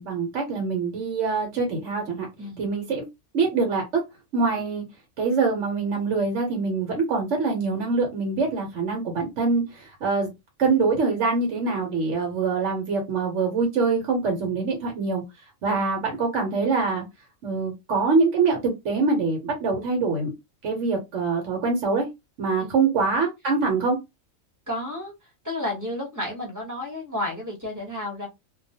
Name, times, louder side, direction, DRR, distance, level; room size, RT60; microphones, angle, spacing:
voice 1, 0.0-2.3 2.6-3.0 3.3-4.0 4.3-4.8 5.2-10.3 10.6-15.2 15.6-17.0 17.4-20.3 20.6-22.1 22.4-24.0, right 4 dB, 60° right, 1 dB, 1.1 m, -24 dB
voice 2, 24.7-25.1 25.4-28.3, left 1 dB, 15° right, -3 dB, 0.9 m, -31 dB
2.3 x 2.3 x 2.7 m, 0.21 s
omnidirectional pair, 1.5 m